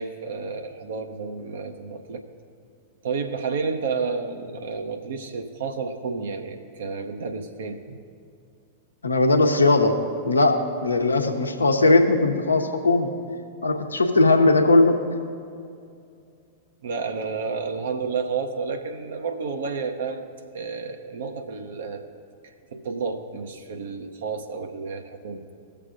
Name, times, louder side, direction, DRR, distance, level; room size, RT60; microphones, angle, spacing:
voice 1, 0.0-2.2 3.0-8.0 16.8-20.3 20.5-22.1 22.4-25.5, right 5 dB, 65° right, 5 dB, 0.7 m, -31 dB
voice 2, 9.0-9.9 10.2-13.1 13.6-15.0, left 2 dB, 80° left, 5 dB, 0.8 m, -19 dB
19.0 x 6.7 x 2.5 m, 2.4 s
figure-of-eight pair, 100°, 0 cm